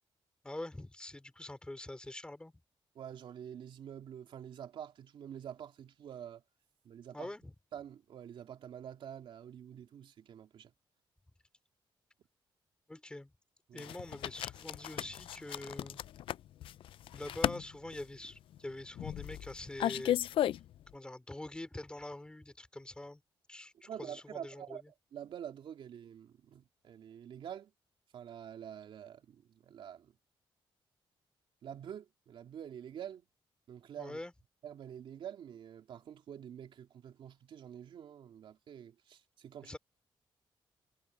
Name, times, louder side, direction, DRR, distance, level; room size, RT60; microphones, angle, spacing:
voice 1, 0.4-2.5 7.1-7.5 12.9-13.3 13.7-16.0 17.1-20.5 20.9-23.2 23.5-24.8 34.0-34.3 39.6-39.8, left 1 dB, 10° left, 3.2 m, -45 dB
voice 2, 2.9-6.4 6.8-7.3 7.7-10.7 13.7-13.9 23.8-24.8 25.1-27.7 28.1-30.1 31.6-33.3 33.7-34.2 34.6-39.8, right 9 dB, 70° right, 2.8 m, -47 dB
sound 1, 13.8-20.9, left 12 dB, 80° left, 0.4 m, -35 dB
wide cardioid pair, 140°, 9 cm